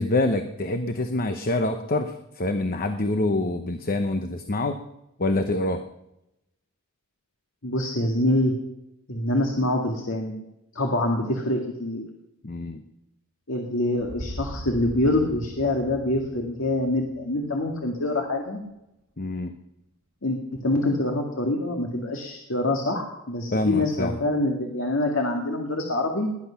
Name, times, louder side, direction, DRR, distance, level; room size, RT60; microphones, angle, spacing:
voice 1, 0.0-4.8 5.2-5.8 12.4-12.8 19.2-19.5 23.5-24.2, left 2 dB, 45° left, 8 dB, 0.9 m, -26 dB
voice 2, 7.6-8.6 9.1-10.3 10.8-12.0 13.5-18.6 20.2-26.3, left 1 dB, 70° left, 1 dB, 2.0 m, -25 dB
sound 1, 14.0-18.0, equal, 65° right, 2.5 m, -40 dB
20.0 x 11.0 x 5.8 m, 0.88 s
head